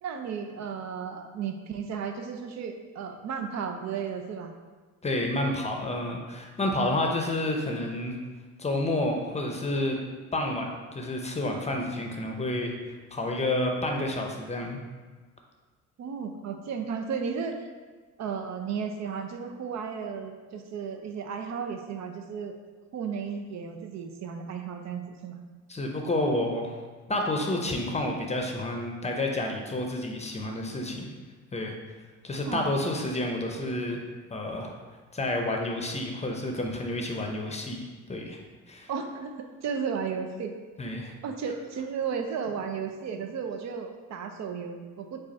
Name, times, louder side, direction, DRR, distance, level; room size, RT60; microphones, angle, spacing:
voice 1, 0.0-4.5 16.0-17.7 18.2-22.5 22.9-25.4 32.5-33.0 38.9-40.5 41.2-45.2, right 6 dB, 65° right, 5 dB, 0.5 m, -34 dB
voice 2, 5.0-8.2 8.6-10.0 10.3-12.7 13.1-14.8 25.7-26.8 27.1-31.1 31.5-31.7 32.2-34.0 34.3-34.7 35.1-37.8 38.1-38.4 38.7-38.9 40.8-41.1, left 1 dB, 20° left, 2 dB, 0.6 m, -29 dB
4.8 x 2.5 x 4.2 m, 1.4 s
cardioid pair, 90°, 30 cm